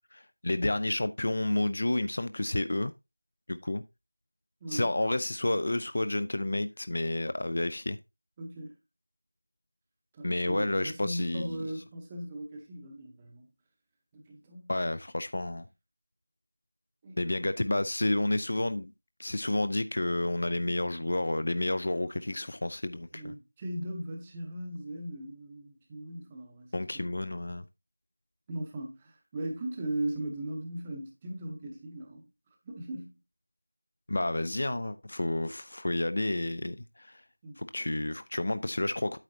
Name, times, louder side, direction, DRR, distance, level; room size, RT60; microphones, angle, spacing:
voice 1, 0.1-2.9 3.5-3.8 4.7-8.0 10.2-11.5 14.7-15.7 17.2-18.9 19.2-23.3 26.7-27.6 34.1-37.2 37.6-39.2, left 1 dB, 35° left, 0.4 m, -30 dB
voice 2, 4.6-4.9 8.4-8.7 10.1-13.5 14.1-14.7 17.0-17.4 23.1-27.0 28.5-32.2 32.6-33.2 37.4-37.6, right 1 dB, 10° right, 0.8 m, -38 dB
8.9 x 7.1 x 2.7 m
figure-of-eight pair, 175°, 0 cm